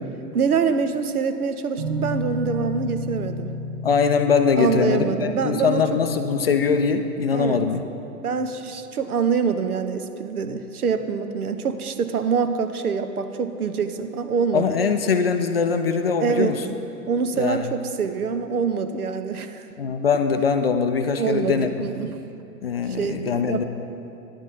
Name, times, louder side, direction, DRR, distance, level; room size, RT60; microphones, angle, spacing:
voice 1, 0.3-3.5 4.6-6.0 7.3-7.6 8.2-15.0 16.2-16.6 17.1-19.7 21.2-22.2 22.9-23.6, right 6 dB, 70° right, 9 dB, 0.7 m, -25 dB
sound 1, 1.8-7.4, left 2 dB, 15° right, 0.5 m, -32 dB
voice 2, 3.8-7.8 14.5-16.6 17.4-17.6 19.8-21.9 22.6-23.6, left 5 dB, 40° left, 7 dB, 0.4 m, -22 dB
11.0 x 8.8 x 4.0 m, 2.8 s
figure-of-eight pair, 110°, 47 cm